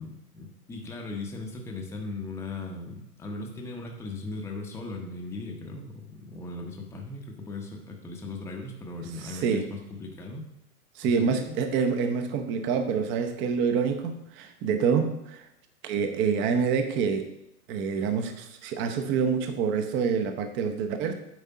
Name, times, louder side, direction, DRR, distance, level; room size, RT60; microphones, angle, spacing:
voice 1, 0.0-10.5 11.0-11.6, left 3 dB, 5° left, 1 dB, 0.8 m, -38 dB
voice 2, 9.2-9.7 11.0-15.4 15.8-17.3 17.7-21.1, right 6 dB, 25° right, 7 dB, 0.8 m, -27 dB
9.1 x 3.6 x 5.6 m, 0.83 s
hypercardioid pair, 120°, 47 cm